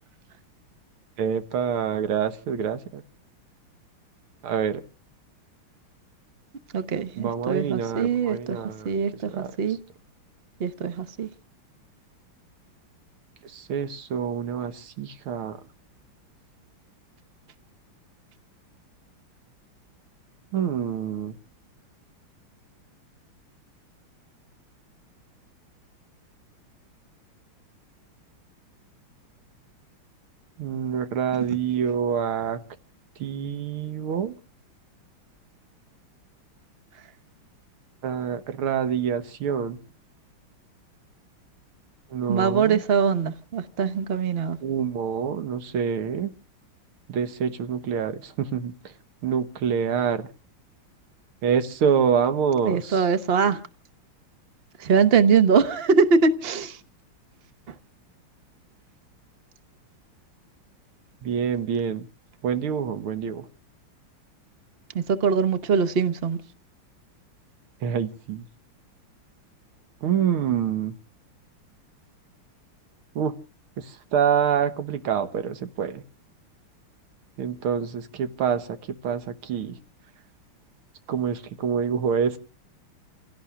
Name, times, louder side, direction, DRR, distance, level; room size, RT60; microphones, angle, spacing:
voice 1, 1.2-3.0 4.4-4.8 7.2-8.9 9.3-9.5 13.4-15.6 20.5-21.3 30.6-32.6 33.2-34.3 38.0-39.8 42.1-42.8 44.6-46.3 47.1-48.7 49.2-50.3 51.4-53.1 61.2-62.1 62.4-63.5 67.8-68.5 70.0-70.9 73.2-73.3 73.8-76.0 77.4-78.8 79.0-79.8 81.1-82.4, right 7 dB, 85° right, 2.0 m, -26 dB
voice 2, 6.7-8.6 8.8-9.8 10.6-11.3 42.3-44.6 52.6-53.6 54.8-56.8 64.9-66.4, right 5 dB, 50° right, 0.7 m, -22 dB
30.0 x 17.0 x 2.3 m
omnidirectional pair, 2.3 m